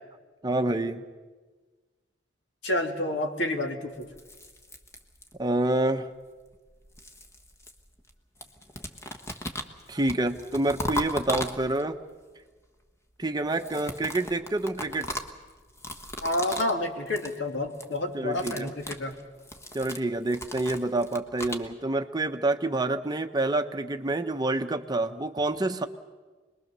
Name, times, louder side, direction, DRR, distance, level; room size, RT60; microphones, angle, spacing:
voice 1, 0.4-1.0 5.4-6.1 9.9-12.0 13.2-15.1 18.1-18.7 19.7-25.8, right 2 dB, 20° right, 7 dB, 0.9 m, -27 dB
voice 2, 2.6-4.1 16.2-19.2, left 1 dB, 65° left, 4 dB, 2.3 m, -29 dB
sound 1, 4.0-5.6 6.5-8.1 8.4-12.0 13.4-16.8 17.1-17.4 17.7-18.0 18.3-21.7, left 1 dB, 15° left, 1.2 m, -37 dB
26.0 x 21.0 x 6.8 m, 1.3 s
head